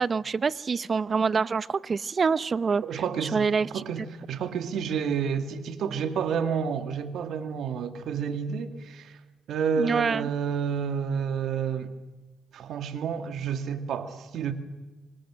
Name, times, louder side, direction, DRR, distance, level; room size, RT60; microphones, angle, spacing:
voice 1, 0.0-3.8 9.8-10.3, right 5 dB, 40° right, 0.8 m, -26 dB
voice 2, 2.8-4.0 4.3-9.2 9.5-11.9 12.5-14.5, right 7 dB, 70° right, 2.4 m, -30 dB
27.5 x 25.0 x 6.4 m
cardioid pair, 90°, 0 cm